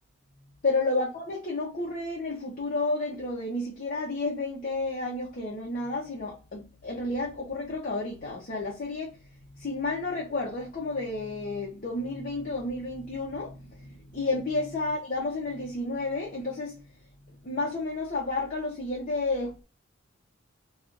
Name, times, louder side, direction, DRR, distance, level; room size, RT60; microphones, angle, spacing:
voice 1, 0.6-9.1 9.5-16.8 17.4-19.6, left 2 dB, 45° left, 0.7 m, -31 dB
3.2 x 2.4 x 2.5 m
head